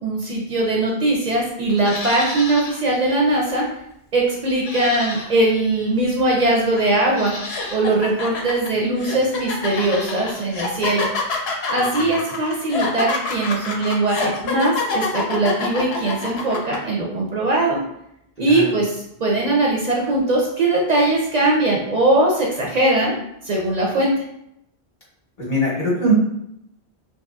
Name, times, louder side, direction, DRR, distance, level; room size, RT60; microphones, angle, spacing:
voice 1, 0.0-3.7 4.1-7.3 7.7-11.1 11.7-17.8 18.4-23.1 23.4-24.1, right 2 dB, 55° right, -2 dB, 0.5 m, -20 dB
Livestock farm animals working animals, 1.7-2.8 3.2-3.3 4.5-5.6 6.4-6.5 7.1-7.9 9.5-10.5 10.7-10.8, left 2 dB, 55° left, 0.4 m, -33 dB
sound 1, 6.8-6.9 7.4-16.8, left 4 dB, 75° left, 0.8 m, -26 dB
voice 2, 18.4-18.8 25.4-26.2, right 1 dB, 40° left, -6 dB, 0.8 m, -22 dB
2.9 x 2.7 x 2.3 m, 0.78 s
omnidirectional pair, 1.1 m